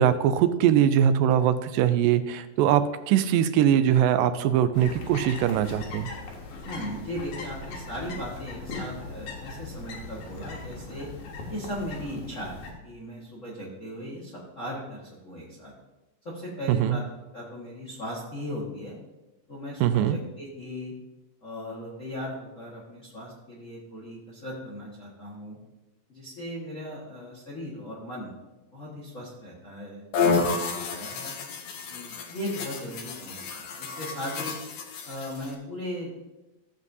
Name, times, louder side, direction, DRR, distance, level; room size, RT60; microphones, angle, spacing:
voice 1, 0.0-6.1 16.7-17.0 19.8-20.2, right 10 dB, 85° right, 11 dB, 2.2 m, -22 dB
sound 1, 4.7-12.7, left 3 dB, 85° left, 3.0 m, -39 dB
voice 2, 6.6-11.1 11.5-15.7 16.2-17.0 17.3-19.0 19.5-20.9 21.4-25.6 26.1-28.3 28.7-31.4 31.9-34.5 35.0-36.1, equal, 45° left, -5 dB, 1.0 m, -37 dB
sound 2, 30.1-35.5, left 4 dB, 65° left, 1.9 m, -30 dB
14.5 x 7.4 x 2.7 m, 1.1 s
omnidirectional pair, 3.9 m